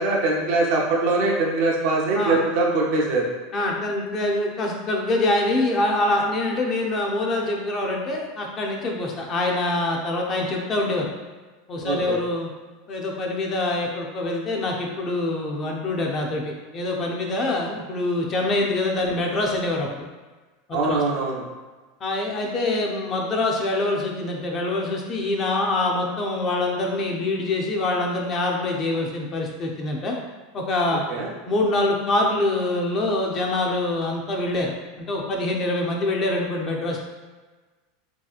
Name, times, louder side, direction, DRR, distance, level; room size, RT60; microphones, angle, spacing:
voice 1, 0.0-3.3 11.8-12.2 20.7-21.4 31.1-31.3, right 3 dB, 55° right, -2 dB, 0.6 m, -22 dB
voice 2, 3.5-11.1 11.7-12.5 12.9-20.0 20.7-21.0 22.0-30.2 30.5-31.0 31.5-37.0, left 2 dB, 25° left, 0 dB, 0.4 m, -25 dB
3.1 x 2.8 x 2.3 m, 1.3 s
supercardioid pair, 160°, 0 cm